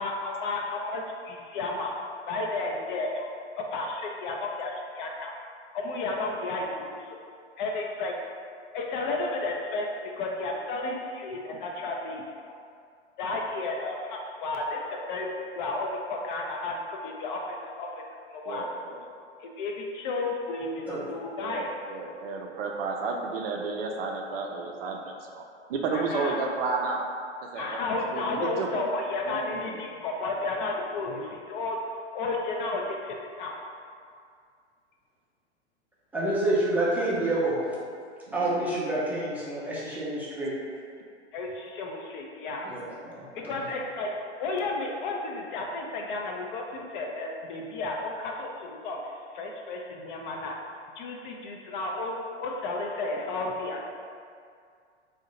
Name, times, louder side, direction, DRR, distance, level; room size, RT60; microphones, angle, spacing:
voice 1, 0.0-1.9 2.3-3.3 3.6-5.3 5.7-7.1 7.6-8.1 8.7-9.9 10.2-12.2 13.2-15.3 15.6-17.4 17.8-17.9 18.3-18.7 19.4-21.7 25.9-26.4 27.6-31.8 32.1-33.6 41.3-42.9 43.3-44.1 44.4-50.5 51.0-53.9, left 2 dB, 45° left, 0 dB, 0.5 m, -32 dB
voice 2, 18.5-19.1 21.4-25.4 25.7-27.0 27.5-27.8 28.1-28.9 29.2-29.8 38.3-38.7, right 4 dB, 55° right, 1 dB, 0.4 m, -32 dB
voice 3, 36.1-37.7 38.3-40.5 42.6-43.5, right 1 dB, 5° right, -7 dB, 0.5 m, -28 dB
2.6 x 2.1 x 3.8 m, 2.2 s
hypercardioid pair, 100°, 36 cm